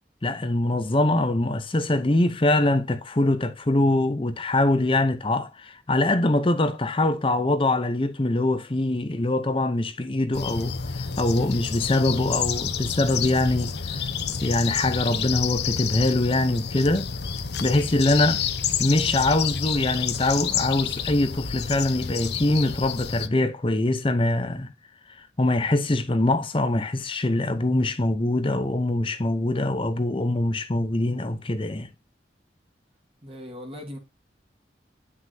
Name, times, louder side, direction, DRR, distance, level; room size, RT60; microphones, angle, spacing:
voice 1, 0.2-14.1 14.4-17.1 17.6-18.4 18.8-24.7 25.2-31.9, left 2 dB, 30° left, 0.8 m, -23 dB
sound 1, 10.3-23.3, left 7 dB, 65° left, 0.9 m, -29 dB
voice 2, 33.2-34.0, left 1 dB, 30° right, 1.9 m, -38 dB
9.6 x 6.1 x 2.8 m
head